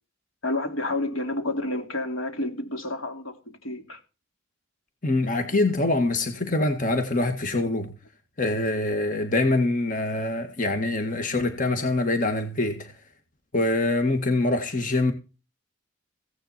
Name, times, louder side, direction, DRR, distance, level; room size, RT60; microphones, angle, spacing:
voice 1, 0.4-4.0, left 2 dB, 85° left, 3.1 m, -30 dB
voice 2, 5.0-8.0 8.4-12.9 13.5-15.1, left 2 dB, 40° left, 1.7 m, -24 dB
16.5 x 10.0 x 4.4 m
head